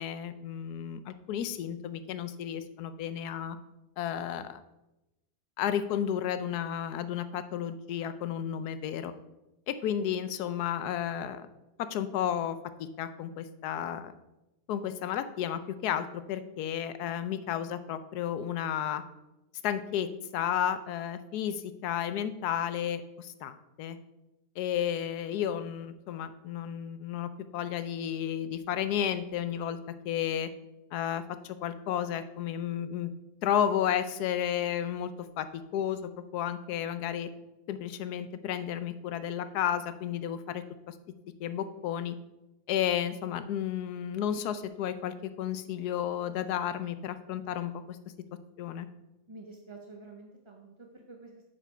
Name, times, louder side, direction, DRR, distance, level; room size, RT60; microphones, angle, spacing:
voice 1, 0.0-3.6 4.0-4.6 5.6-9.1 9.7-11.4 11.8-14.1 14.7-19.0 19.6-20.1 20.3-24.0 24.6-29.8 30.0-30.5 30.9-33.1 33.4-35.1 35.4-37.3 37.7-40.9 41.4-42.2 42.7-48.0 48.6-48.9, left 9 dB, 75° left, 12 dB, 1.2 m, -32 dB
voice 2, 49.3-51.4, right 3 dB, 35° right, 2 dB, 0.5 m, -49 dB
9.0 x 4.8 x 5.6 m, 0.96 s
omnidirectional pair, 1.7 m